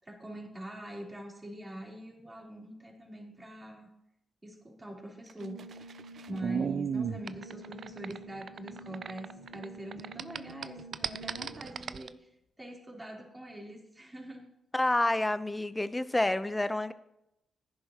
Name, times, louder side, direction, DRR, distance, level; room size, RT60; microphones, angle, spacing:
voice 1, 0.0-3.9 4.4-6.0 6.3-12.3 12.6-14.5, right 1 dB, 20° right, -1 dB, 3.8 m, -44 dB
sound 1, 5.3-9.7 9.9-12.1, right 7 dB, 60° right, 0.4 m, -35 dB
Brass instrument, 5.4-11.8, right 1 dB, 90° left, 1.2 m, -49 dB
voice 2, 14.7-16.9, left 1 dB, 15° left, 14 dB, 0.7 m, -28 dB
16.0 x 10.5 x 3.0 m, 0.84 s
supercardioid pair, 50°, 0 cm